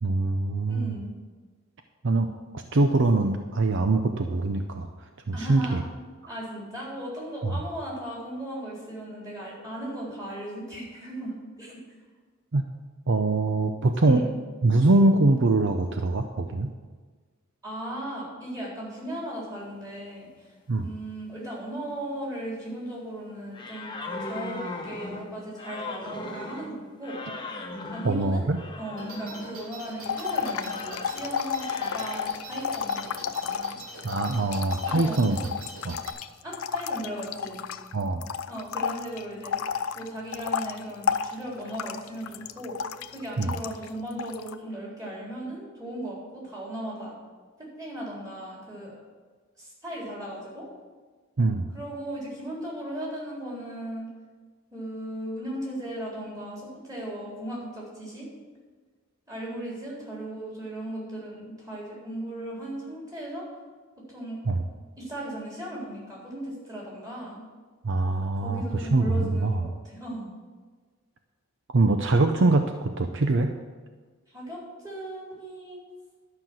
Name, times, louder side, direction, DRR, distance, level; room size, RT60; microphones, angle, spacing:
voice 1, 0.0-0.9 2.0-4.9 5.3-5.8 7.4-7.5 12.5-12.6 13.1-14.2 14.6-16.7 20.7-20.9 28.0-28.6 34.0-35.4 35.8-36.0 37.9-38.2 43.4-43.5 51.4-51.7 64.5-64.6 67.8-69.7 71.7-73.5, right 2 dB, 60° right, 6 dB, 0.6 m, -23 dB
voice 2, 0.7-1.1 5.3-5.8 6.3-11.8 14.1-14.3 17.6-20.5 20.8-23.9 24.2-27.2 27.9-28.5 28.8-33.8 34.9-35.2 36.4-37.6 38.5-39.5 39.9-42.8 43.1-47.1 47.6-49.0 49.6-50.7 51.7-54.1 54.7-58.3 59.3-63.5 64.1-64.4 65.0-67.4 68.4-70.3 74.3-75.8, right 1 dB, 15° right, -5 dB, 4.0 m, -37 dB
sound 1, 23.5-29.6 30.1-31.2 31.6-32.2, left 2 dB, 20° left, 1.1 m, -38 dB
sound 2, 29.0-36.1, right 2 dB, 75° right, 2.9 m, -44 dB
sound 3, 30.0-37.9 38.2-43.9 44.2-44.5, left 7 dB, 75° left, 0.5 m, -31 dB
11.5 x 5.8 x 7.6 m, 1.4 s
head